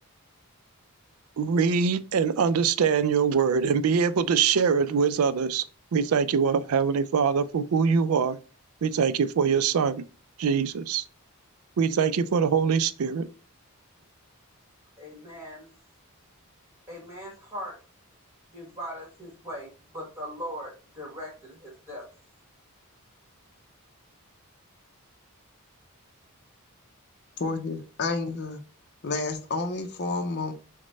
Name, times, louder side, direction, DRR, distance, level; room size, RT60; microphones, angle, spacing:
voice 1, 1.4-5.6 5.9-8.4 8.8-10.0 10.4-11.0 11.8-13.3, right 6 dB, 75° right, 0.4 m, -23 dB
voice 2, 15.0-15.7 16.9-17.8 18.5-22.0, equal, 10° right, 1.5 m, -39 dB
voice 3, 27.4-28.6 29.0-30.5, left 3 dB, 50° left, 0.6 m, -30 dB
6.3 x 2.2 x 3.9 m
head